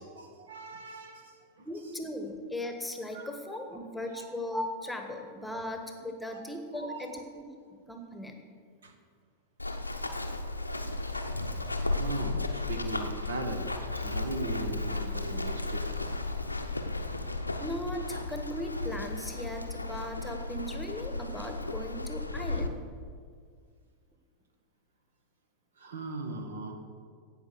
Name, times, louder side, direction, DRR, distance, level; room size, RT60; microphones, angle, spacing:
voice 1, 0.0-1.7 3.1-3.3 4.1-4.3 6.3-6.4 6.7-7.2 8.8-9.0 11.8-16.1 25.8-26.7, right 2 dB, 65° right, 5 dB, 1.4 m, -39 dB
voice 2, 1.6-8.4 17.6-22.8, left 1 dB, 5° left, 4 dB, 1.3 m, -38 dB
Run, 9.6-22.7, left 2 dB, 85° left, 0.8 m, -34 dB
17.0 x 5.8 x 6.6 m, 2.1 s
figure-of-eight pair, 90°, 0 cm